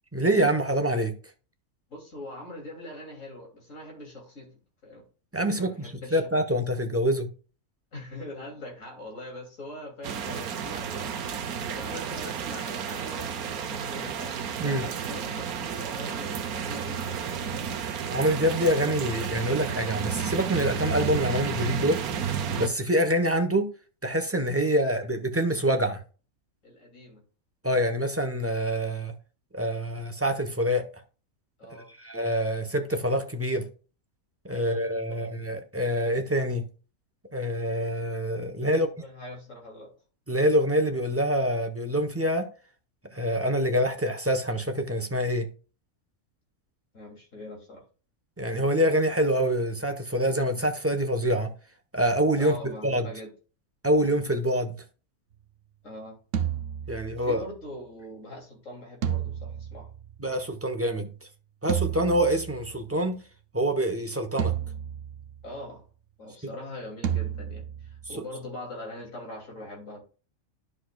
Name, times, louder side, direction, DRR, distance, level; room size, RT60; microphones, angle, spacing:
voice 1, 0.1-1.1 5.3-7.3 14.6-14.8 18.1-23.7 24.0-26.0 27.6-29.1 29.5-30.8 32.0-33.7 34.4-36.6 37.3-38.9 40.3-42.5 43.1-45.5 48.4-51.5 51.9-52.5 52.8-53.0 53.8-54.8 56.9-57.4 60.2-61.3 61.6-63.2 63.5-64.5, equal, 10° right, 0.8 m, -26 dB
voice 2, 1.9-5.0 5.5-6.3 7.9-17.4 24.8-24.9 26.6-27.2 31.6-31.9 34.6-35.3 38.5-39.9 46.9-47.8 52.4-53.3 55.8-56.2 56.9-59.9 65.4-65.8 66.2-70.0, left 1 dB, 60° left, 3.2 m, -42 dB
sound 1, 10.0-22.7, right 7 dB, 85° right, 1.3 m, -32 dB
sound 2, 56.3-57.5 59.0-60.5 61.7-62.9 64.4-65.6 67.0-68.2, right 9 dB, 65° right, 1.0 m, -32 dB
10.5 x 6.4 x 2.3 m
omnidirectional pair, 1.5 m